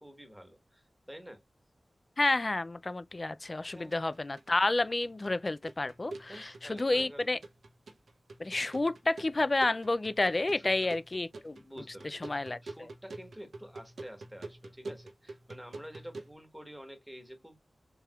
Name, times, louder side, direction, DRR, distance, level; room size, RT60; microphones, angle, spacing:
voice 1, 0.0-1.4 3.7-4.0 6.3-7.3 10.3-10.9 11.6-12.3 12.6-17.6, equal, 5° right, 1.3 m, -49 dB
voice 2, 2.2-7.4 8.4-11.6 12.0-12.6, left 2 dB, 35° left, 0.4 m, -30 dB
sound 1, 3.5-16.3, right 2 dB, 90° right, 0.9 m, -48 dB
4.5 x 3.4 x 2.4 m
wide cardioid pair, 95°, 0 cm